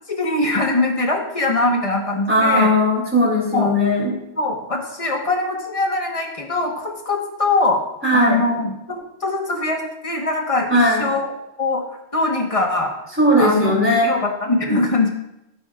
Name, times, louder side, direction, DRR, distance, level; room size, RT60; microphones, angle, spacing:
voice 1, 0.1-2.7 3.5-3.7 4.4-7.8 8.1-11.2 11.6-11.8 12.1-12.9 13.4-15.1, left 2 dB, 30° left, 1 dB, 1.4 m, -22 dB
voice 2, 2.3-4.1 8.0-8.4 10.7-11.1 13.2-14.1, left 1 dB, 10° right, -3 dB, 3.0 m, -17 dB
14.5 x 7.6 x 2.5 m, 0.88 s
omnidirectional pair, 1.2 m